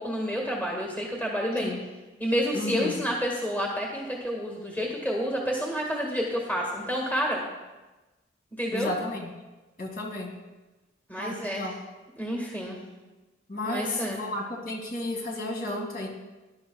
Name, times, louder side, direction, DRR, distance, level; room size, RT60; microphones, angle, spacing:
voice 1, 0.0-1.7 2.2-7.4 8.6-8.9 11.1-11.7 12.2-12.8 13.6-14.2, equal, 10° left, -1 dB, 1.7 m, -29 dB
voice 2, 2.5-3.0 8.7-9.3 9.8-10.3 11.2-11.7 13.5-16.1, left 1 dB, 50° left, -1 dB, 2.3 m, -32 dB
19.5 x 11.5 x 2.4 m, 1.1 s
head